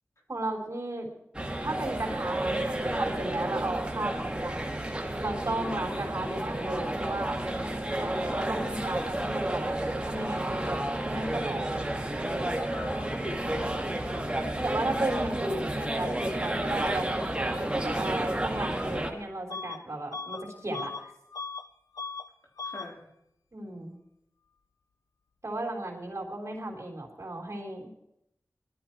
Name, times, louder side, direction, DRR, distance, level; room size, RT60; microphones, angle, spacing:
voice 1, 0.3-1.1 1.6-7.5 7.9-11.7 14.6-20.9 23.5-24.0 25.4-27.9, right 2 dB, 55° right, 0 dB, 3.6 m, -35 dB
sound 1, 1.3-19.1, right 1 dB, 15° right, 2.0 m, -31 dB
voice 2, 12.7-14.5 22.6-23.0, left 2 dB, 55° left, -1 dB, 3.7 m, -44 dB
Bus / Alarm, 19.5-19.8 20.1-21.7 21.9-22.3 22.6-22.9, left 4 dB, 85° left, 0.6 m, -38 dB
20.0 x 12.5 x 4.6 m, 0.81 s
cardioid pair, 45°, 6 cm